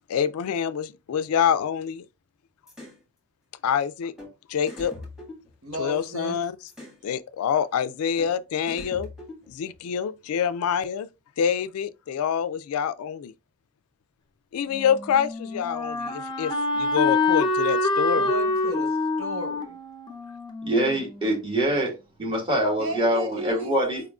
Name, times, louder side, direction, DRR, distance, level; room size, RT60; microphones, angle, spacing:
voice 1, 0.1-2.0 3.6-4.1 4.5-4.9 5.8-6.6 7.0-9.1 9.5-11.1 11.4-13.3 14.5-18.3, left 8 dB, 70° left, 0.3 m, -26 dB
sound 1, 2.7-3.0 4.2-4.3 4.7-6.1 6.7-7.0 8.2-8.3 8.7-9.8, left 2 dB, ahead, 1.5 m, -42 dB
voice 2, 5.6-6.4 18.1-19.8 22.8-23.7, right 2 dB, 65° right, 1.0 m, -34 dB
Wind instrument woodwind instrument, 14.7-21.6, left 3 dB, 20° left, 0.6 m, -26 dB
voice 3, 20.6-21.9 22.2-24.0, right 1 dB, 25° right, 1.7 m, -24 dB
4.5 x 3.6 x 2.3 m
head